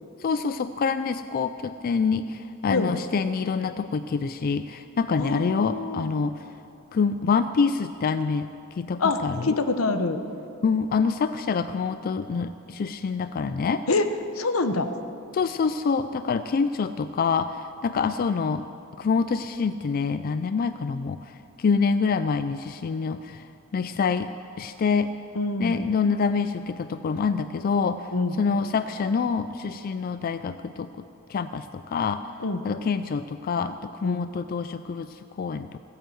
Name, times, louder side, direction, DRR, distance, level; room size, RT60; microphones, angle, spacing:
voice 1, 0.2-6.4 6.9-8.5 8.8-9.5 10.6-13.8 15.3-18.7 19.0-21.3 21.6-23.5 23.7-24.3 24.6-25.1 25.6-28.1 28.4-30.9 31.3-32.2 32.6-35.8, left 5 dB, 45° left, 11 dB, 0.3 m, -26 dB
voice 2, 5.2-6.1 9.0-10.2 13.9-14.0 14.3-14.9 25.3-25.8 28.1-28.4 32.4-32.6 34.0-34.2, left 3 dB, 80° left, 9 dB, 0.9 m, -26 dB
16.0 x 9.2 x 7.8 m, 2.7 s
head